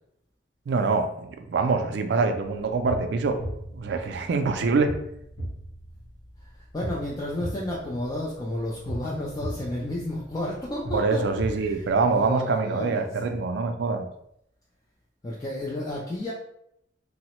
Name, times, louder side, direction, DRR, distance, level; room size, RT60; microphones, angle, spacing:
voice 1, 0.7-3.4 3.7-4.9 10.9-14.1, right 4 dB, 65° right, 7 dB, 0.3 m, -25 dB
sound 1, 2.4-12.3, equal, 85° left, 1.0 m, -38 dB
voice 2, 6.4-11.2 11.5-13.2 15.2-16.3, left 1 dB, 20° left, -5 dB, 0.4 m, -32 dB
3.1 x 2.0 x 2.9 m, 0.76 s
head